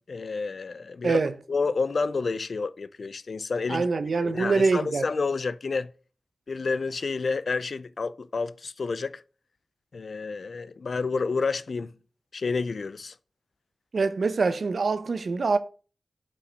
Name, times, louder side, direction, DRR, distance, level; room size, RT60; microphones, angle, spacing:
voice 1, 0.1-1.2 1.5-3.9 4.2-5.9 6.5-9.2 9.9-11.9 12.3-13.1, left 4 dB, 70° left, 0.4 m, -29 dB
voice 2, 3.7-5.0 13.9-15.6, right 4 dB, 75° right, 0.6 m, -24 dB
5.6 x 5.1 x 6.2 m
wide cardioid pair, 85°, 0 cm